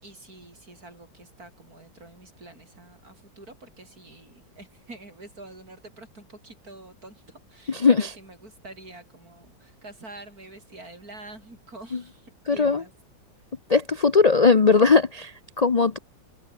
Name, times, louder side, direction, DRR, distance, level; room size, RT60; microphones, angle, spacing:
voice 1, 0.0-12.9, right 2 dB, 50° right, 6.8 m, -46 dB
voice 2, 7.7-8.1 11.9-12.0 12.5-12.8 13.7-16.0, left 4 dB, 65° left, 0.3 m, -19 dB
omnidirectional pair, 2.0 m